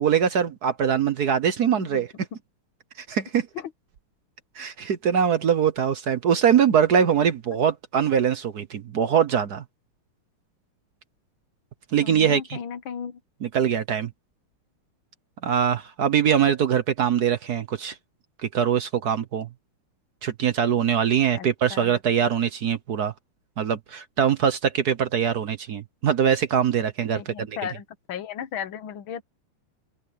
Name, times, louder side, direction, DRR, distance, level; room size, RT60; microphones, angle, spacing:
voice 1, 0.0-2.1 3.1-3.5 4.6-9.6 11.9-12.6 13.4-14.1 15.4-17.9 18.4-19.5 20.2-23.1 23.6-27.6, right 8 dB, 55° right, 1.3 m, -22 dB
voice 2, 12.0-13.2 21.4-21.9 27.1-29.2, left 8 dB, 70° left, 1.8 m, -35 dB
omnidirectional pair, 2.3 m